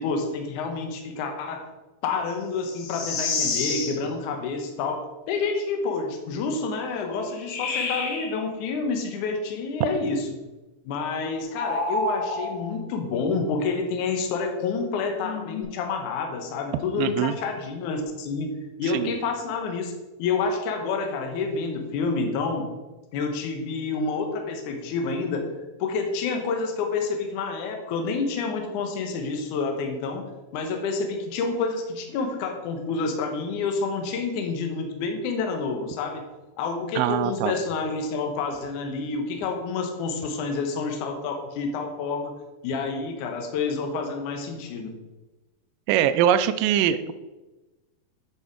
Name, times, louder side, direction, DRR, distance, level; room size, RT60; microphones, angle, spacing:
voice 1, 0.0-1.7 2.0-5.0 5.3-10.3 10.9-18.5 18.8-19.9 20.2-22.7 23.1-25.5 25.8-30.2 30.5-36.2 36.6-42.3 42.6-44.9, left 4 dB, 70° left, 4 dB, 2.3 m, -28 dB
chant of the motherboard, 2.6-4.0 7.3-8.3 11.5-12.7 15.2-15.6, left 3 dB, 90° left, 3.1 m, -29 dB
voice 2, 17.0-17.4 18.9-19.1 37.0-37.5 45.9-47.1, right 10 dB, 80° right, 11 dB, 2.2 m, -22 dB
9.1 x 5.4 x 4.7 m, 1.1 s
omnidirectional pair, 4.2 m